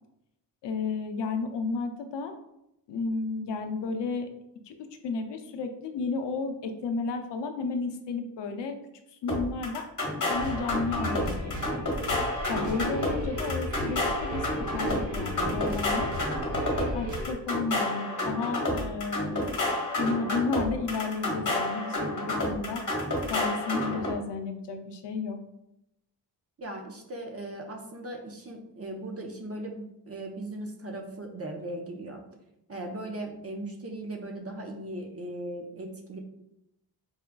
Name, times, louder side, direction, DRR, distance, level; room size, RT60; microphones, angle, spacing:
voice 1, 0.6-2.4 2.9-4.3 4.7-8.8 9.1-9.9 10.3-11.9 12.5-16.1 16.9-19.6 20.0-22.8 23.3-25.4, left 4 dB, 80° left, 6 dB, 0.5 m, -32 dB
sound 1, 9.3-24.1, left 1 dB, 45° left, 1.2 m, -30 dB
sound 2, 10.3-17.3, equal, 85° right, 1.0 m, -35 dB
voice 2, 26.6-32.2 32.7-36.2, right 1 dB, 35° right, 2 dB, 0.7 m, -38 dB
4.9 x 2.3 x 2.2 m, 0.83 s
cardioid pair, 55°, 42 cm